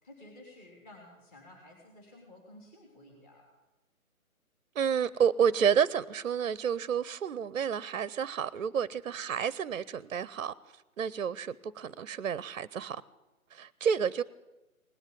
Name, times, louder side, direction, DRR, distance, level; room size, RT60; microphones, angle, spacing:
voice 1, 0.0-3.5, left 1 dB, 20° left, 3.5 m, -53 dB
voice 2, 4.8-10.5 11.0-13.0 13.5-14.2, right 7 dB, 65° right, 0.7 m, -30 dB
19.0 x 8.1 x 9.1 m
figure-of-eight pair, 145°, 42 cm